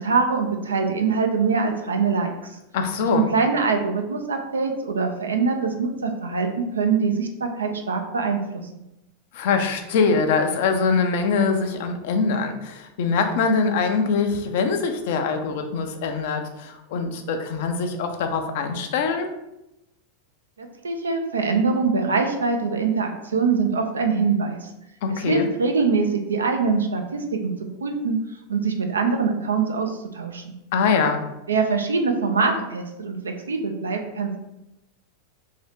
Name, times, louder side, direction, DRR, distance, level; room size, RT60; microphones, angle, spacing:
voice 1, 0.0-2.3 3.1-8.4 20.6-24.7 25.1-27.5 27.8-28.2 28.5-30.4 31.5-34.4, right 4 dB, 85° right, 4 dB, 0.4 m, -23 dB
voice 2, 2.7-3.3 9.3-19.3 25.0-25.5 30.7-31.2, left 5 dB, 65° left, 6 dB, 0.5 m, -23 dB
2.8 x 2.7 x 3.4 m, 0.90 s
hypercardioid pair, 95°, 0 cm